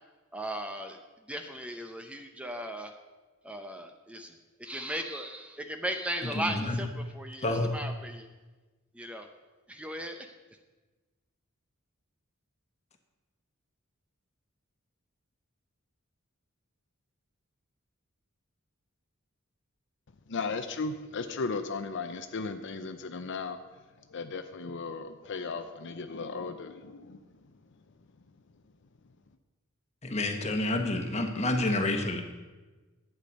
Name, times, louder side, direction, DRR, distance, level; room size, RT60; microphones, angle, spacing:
voice 1, 0.3-1.0 1.3-2.9 3.4-4.3 4.6-8.3 8.9-9.3 9.7-10.3, right 1 dB, 5° right, 5 dB, 0.6 m, -37 dB
voice 2, 6.3-6.8 7.4-7.7 30.0-32.2, left 2 dB, 30° left, 5 dB, 1.3 m, -29 dB
voice 3, 20.3-23.6 24.1-27.2, left 4 dB, 60° left, 8 dB, 0.6 m, -36 dB
11.5 x 8.6 x 5.3 m, 1.2 s
head